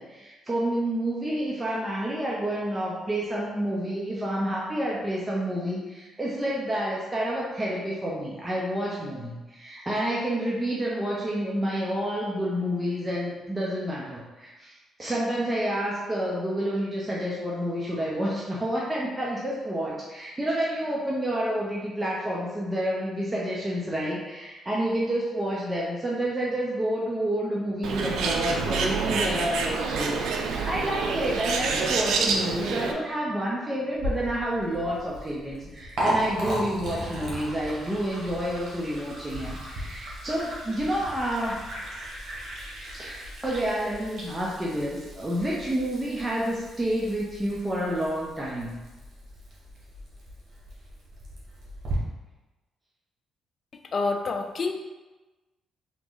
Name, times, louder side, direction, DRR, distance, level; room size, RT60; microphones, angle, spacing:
voice 1, 0.0-41.6 42.8-48.7, right 1 dB, 15° right, -5 dB, 0.8 m, -29 dB
Bird, 27.8-32.9, right 4 dB, 80° right, 0.5 m, -27 dB
Liquid, 33.9-51.9, right 1 dB, 60° right, 1.5 m, -37 dB
voice 2, 53.9-54.7, left 3 dB, 45° left, 5 dB, 0.5 m, -27 dB
3.7 x 3.0 x 3.9 m, 1.1 s
cardioid pair, 90°, 0 cm